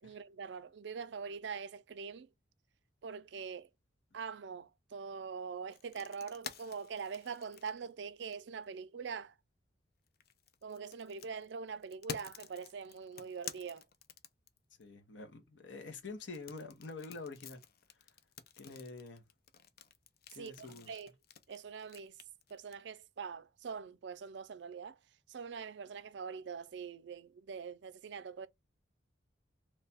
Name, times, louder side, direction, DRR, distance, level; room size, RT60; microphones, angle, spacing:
voice 1, 0.0-2.3 3.0-3.7 4.1-9.3 10.6-13.8 20.3-21.1 21.5-22.2 22.5-25.0 25.3-28.5, right 6 dB, 70° right, 0.4 m, -43 dB
sound 1, 5.7-8.6 10.1-14.8 16.2-22.7, left 7 dB, 55° left, 0.5 m, -50 dB
voice 2, 14.8-17.6 18.6-19.2 20.3-21.0, left 3 dB, 75° left, 0.8 m, -47 dB
3.2 x 2.3 x 4.0 m
head